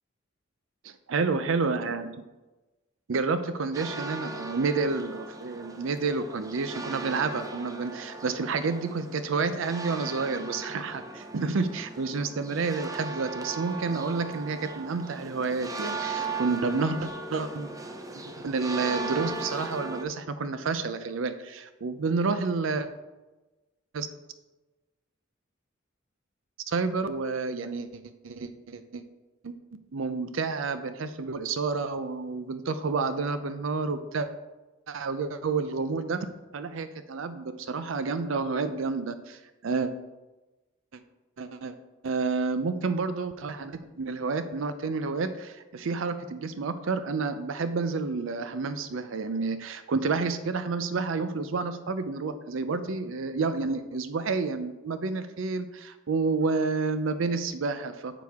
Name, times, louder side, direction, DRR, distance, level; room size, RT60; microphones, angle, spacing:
voice 1, 0.8-2.1 3.1-17.7 18.4-22.9 23.9-24.1 26.7-29.0 29.4-29.5 29.9-34.3 34.9-36.3 36.5-39.9 41.4-41.7 42.0-58.2, right 4 dB, 70° right, 11 dB, 0.5 m, -30 dB
sound 1, 3.7-20.0, right 3 dB, 15° right, 0.6 m, -37 dB
9.3 x 6.0 x 3.6 m, 1.1 s
head